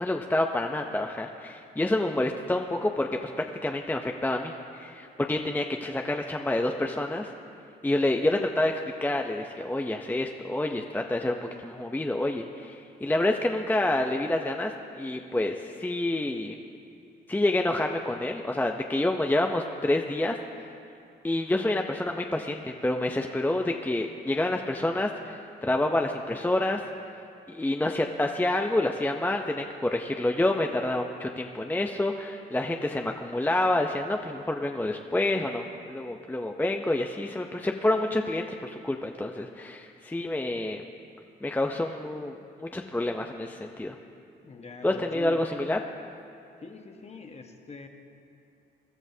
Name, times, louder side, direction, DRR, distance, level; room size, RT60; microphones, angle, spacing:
voice 1, 0.0-3.3 3.6-7.3 7.8-16.6 17.3-20.4 21.2-26.8 27.5-40.8 41.4-44.0 44.8-45.8, left 1 dB, 10° left, 3 dB, 0.6 m, -28 dB
voice 2, 44.4-45.5 46.6-47.9, left 4 dB, 35° left, 4 dB, 1.2 m, -43 dB
23.5 x 12.5 x 2.7 m, 2.6 s
cardioid pair, 90°, 20 cm